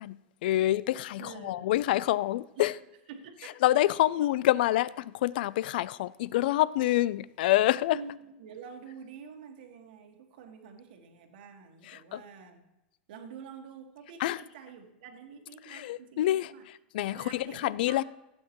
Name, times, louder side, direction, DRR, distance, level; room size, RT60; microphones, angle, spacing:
voice 1, 0.0-2.7 3.6-8.0 12.1-12.2 14.2-14.4 15.7-16.5 16.9-18.0, left 15 dB, 60° left, 0.4 m, -27 dB
voice 2, 1.2-1.7 2.6-2.7 3.1-3.5 4.2-4.3 7.9-12.7 13.1-16.7 17.1-18.0, right 6 dB, 60° right, 1.7 m, -47 dB
16.0 x 8.6 x 3.1 m
supercardioid pair, 165°, 6 cm